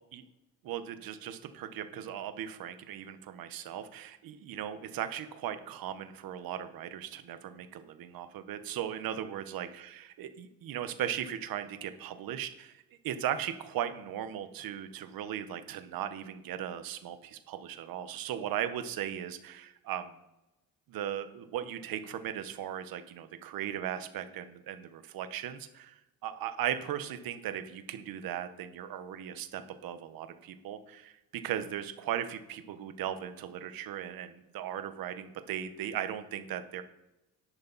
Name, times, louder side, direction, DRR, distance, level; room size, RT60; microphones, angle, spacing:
voice 1, 0.6-12.8 13.0-20.2 20.9-31.1 31.4-36.8, right 10 dB, 70° right, 9 dB, 1.4 m, -37 dB
11.5 x 11.0 x 4.2 m, 0.94 s
cardioid pair, 135°, 36 cm